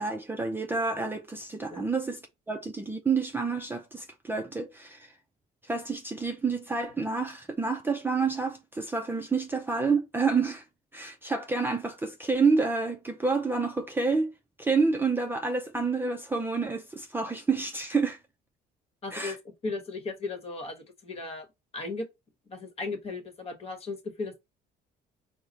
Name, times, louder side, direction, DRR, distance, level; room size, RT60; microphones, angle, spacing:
voice 1, 0.0-2.2 2.5-5.1 5.6-10.6 10.9-14.3 14.6-18.2 19.1-19.4, right 4 dB, 10° right, 0.5 m, -28 dB
voice 2, 19.0-21.5 21.7-22.1 22.5-24.4, left 3 dB, 35° left, 1.3 m, -36 dB
4.7 x 2.1 x 4.0 m
cardioid pair, 110°, 17 cm